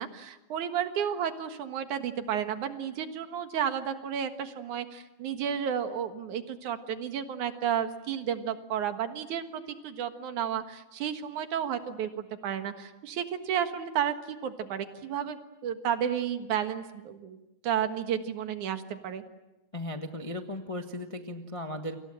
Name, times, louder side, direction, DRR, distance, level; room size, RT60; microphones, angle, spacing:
voice 1, 0.0-17.4 17.6-19.2, right 9 dB, 80° right, 8 dB, 3.0 m, -32 dB
voice 2, 19.7-22.0, left 1 dB, 30° left, 5 dB, 0.5 m, -36 dB
29.0 x 25.0 x 7.7 m, 0.98 s
omnidirectional pair, 3.4 m